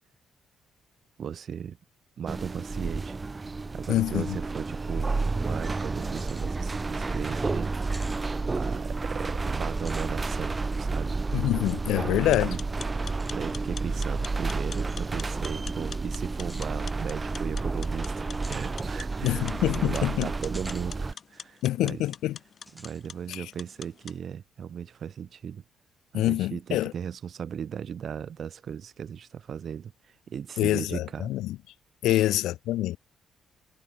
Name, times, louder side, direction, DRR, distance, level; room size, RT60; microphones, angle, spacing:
voice 1, 1.2-1.8 2.2-3.2 3.7-5.1 5.4-7.7 8.5-11.2 11.9-12.6 12.9-19.5 19.7-22.0 22.7-25.6 26.1-29.9 30.3-31.3 32.1-32.2, right 8 dB, 55° right, 3.4 m, -37 dB
sound 1, 2.3-21.1, right 3 dB, 25° right, 4.5 m, -31 dB
voice 2, 3.9-4.2 11.3-12.6 19.2-20.3 21.6-22.4 23.3-23.4 26.1-26.9 30.6-31.6 32.0-33.0, left 15 dB, 90° left, 0.8 m, -26 dB
sound 2, 6.1-6.5 6.9-7.0 7.8-8.2 9.7-10.1 11.6-11.8 13.2-13.3 14.6-14.9 16.4-16.7 18.3-18.7 20.4-20.9 21.3-21.4 22.7-23.0, equal, 5° right, 6.8 m, -48 dB
sound 3, 12.2-24.2, left 7 dB, 50° left, 4.0 m, -45 dB
cardioid pair, 90°, 0 cm